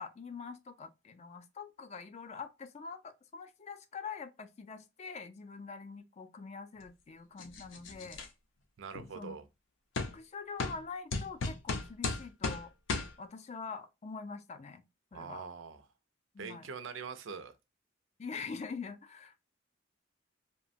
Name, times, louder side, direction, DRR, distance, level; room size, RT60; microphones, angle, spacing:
voice 1, 0.0-8.2 9.2-9.4 10.0-12.7 13.2-14.8 15.1-15.4 16.3-16.7 18.2-19.4, left 5 dB, 35° left, 0.4 m, -44 dB
sound 1, 7.4-8.3 8.9-9.1 10.0-10.1 10.6-10.8 11.1-12.6 12.9-13.1, left 3 dB, 80° left, 0.6 m, -35 dB
voice 2, 8.8-9.5 15.1-15.8 16.4-17.5, right 5 dB, 85° right, 0.5 m, -43 dB
2.8 x 2.1 x 2.5 m
head